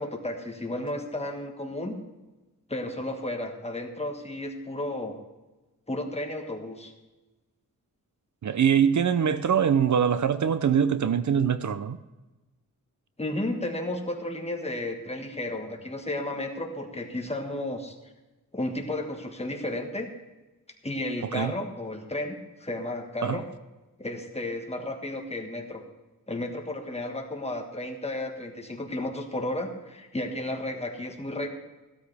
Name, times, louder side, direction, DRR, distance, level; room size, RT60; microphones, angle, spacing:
voice 1, 0.0-2.0 2.7-5.2 5.9-6.9 13.2-17.9 18.5-20.1 20.8-23.5 24.0-25.8 26.3-31.5, left 1 dB, 20° left, 3 dB, 1.6 m, -33 dB
voice 2, 8.4-12.0 21.3-21.5 23.2-23.4, right 8 dB, 60° right, 13 dB, 0.5 m, -23 dB
15.5 x 12.5 x 3.4 m, 1.1 s
wide cardioid pair, 115°, 34 cm